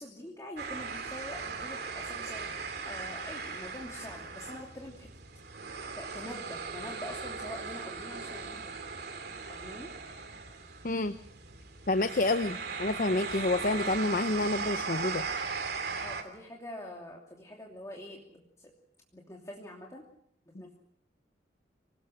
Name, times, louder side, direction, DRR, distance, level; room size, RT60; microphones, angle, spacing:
voice 1, 0.0-5.1 5.9-8.7 9.5-9.9 16.0-18.7 19.1-20.0 20.5-20.7, left 1 dB, 20° left, -1 dB, 2.9 m, -45 dB
sound 1, 0.6-16.2, right 4 dB, 60° right, 2.9 m, -38 dB
voice 2, 10.8-11.1 11.9-15.3, left 2 dB, 50° left, 10 dB, 0.8 m, -28 dB
26.0 x 19.0 x 6.4 m, 0.67 s
head